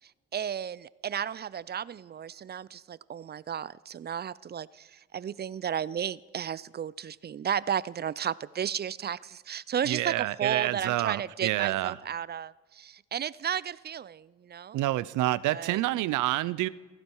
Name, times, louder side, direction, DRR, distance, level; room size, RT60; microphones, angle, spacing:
voice 1, 0.3-14.8 15.5-15.8, right 8 dB, 35° right, 20 dB, 0.4 m, -33 dB
voice 2, 9.9-11.9 14.7-16.7, right 16 dB, 85° right, 19 dB, 0.6 m, -28 dB
16.5 x 14.5 x 4.7 m, 1.3 s
cardioid pair, 90°, 30 cm